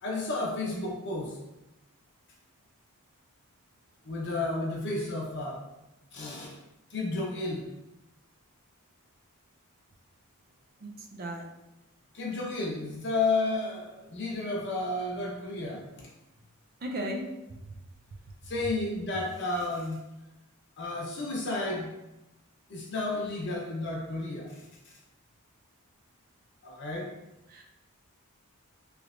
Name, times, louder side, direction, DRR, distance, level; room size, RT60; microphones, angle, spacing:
voice 1, 0.0-1.4 4.0-5.7 6.1-6.5 6.9-7.6 12.1-16.1 18.4-20.0 20.8-21.9 22.7-24.5 24.8-24.9 26.6-27.1, left 2 dB, 55° left, -2 dB, 0.8 m, -32 dB
voice 2, 10.8-11.4 16.8-17.2 27.5-27.6, right 1 dB, 45° right, 2 dB, 0.4 m, -35 dB
3.3 x 3.0 x 2.5 m, 0.94 s
head